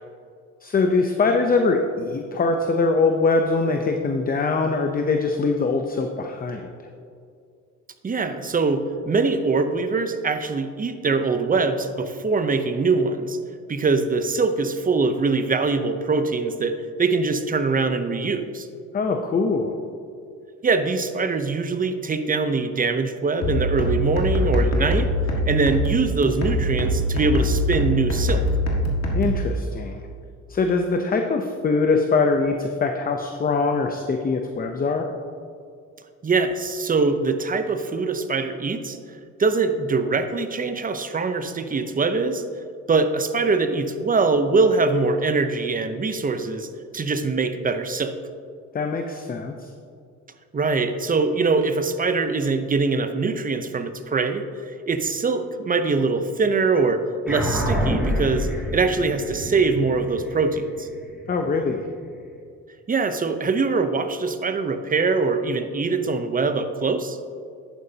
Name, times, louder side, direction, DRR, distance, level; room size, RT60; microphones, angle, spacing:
voice 1, 0.6-6.7 18.9-19.7 29.1-30.0 30.5-35.1 48.7-49.7 61.3-61.8, left 4 dB, 30° left, 4 dB, 0.6 m, -22 dB
voice 2, 8.0-13.4 13.7-18.7 20.6-25.1 25.5-28.4 36.2-39.0 39.4-42.4 42.9-48.1 50.5-60.9 62.9-67.2, right 4 dB, 30° right, 9 dB, 0.7 m, -23 dB
sound 1, 23.4-29.4, equal, 60° left, 1.8 m, -23 dB
sound 2, 57.3-62.0, equal, 5° right, 2.3 m, -27 dB
11.0 x 9.0 x 2.8 m, 2.4 s
cardioid pair, 90°, 30 cm